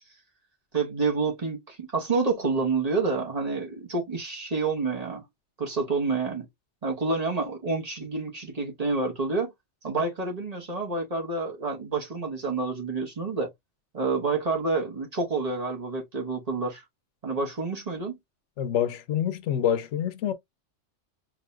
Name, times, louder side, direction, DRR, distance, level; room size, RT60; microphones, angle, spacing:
voice 1, 0.7-5.3 5.6-6.5 6.8-9.5 9.8-13.5 13.9-16.8 17.2-18.2, right 3 dB, 35° right, 1.0 m, -28 dB
voice 2, 18.6-20.3, left 10 dB, 80° left, 0.9 m, -26 dB
4.8 x 2.7 x 2.2 m
omnidirectional pair, 1.2 m